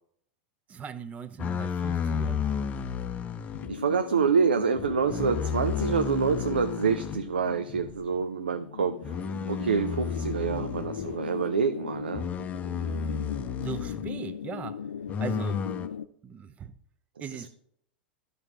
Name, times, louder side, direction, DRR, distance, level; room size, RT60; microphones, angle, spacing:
voice 1, 0.7-2.4 13.6-14.9 15.2-15.7 16.2-16.8 17.2-17.5, right 7 dB, 25° right, 0.6 m, -39 dB
sound 1, 1.4-3.7 4.8-7.2 7.7-8.0 9.0-11.2 12.1-14.1 15.1-15.9, left 6 dB, 25° left, 0.6 m, -32 dB
sound 2, 3.5-16.1, left 8 dB, 75° left, 0.4 m, -38 dB
voice 2, 3.7-9.1 9.5-12.3 17.2-17.5, right 6 dB, 75° right, 0.5 m, -27 dB
12.0 x 5.5 x 3.5 m
figure-of-eight pair, 90°, 5 cm